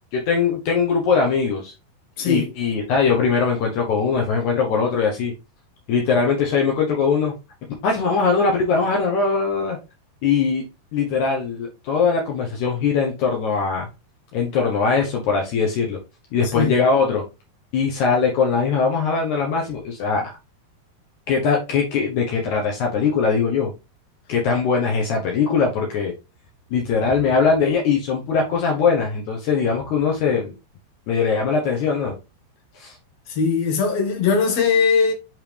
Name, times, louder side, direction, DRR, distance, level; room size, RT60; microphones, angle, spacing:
voice 1, 0.1-1.7 2.2-5.3 5.9-7.3 7.8-9.8 10.2-10.6 10.9-13.9 14.3-16.0 16.3-17.2 17.7-20.3 21.3-23.7 24.3-26.1 26.7-30.5 31.1-32.2 32.7-33.0, left 5 dB, 75° left, 1.8 m, -21 dB
voice 2, 2.2-2.5 16.5-16.7 33.3-35.1, left 5 dB, 55° left, 1.9 m, -20 dB
7.8 x 3.7 x 3.4 m
omnidirectional pair, 4.9 m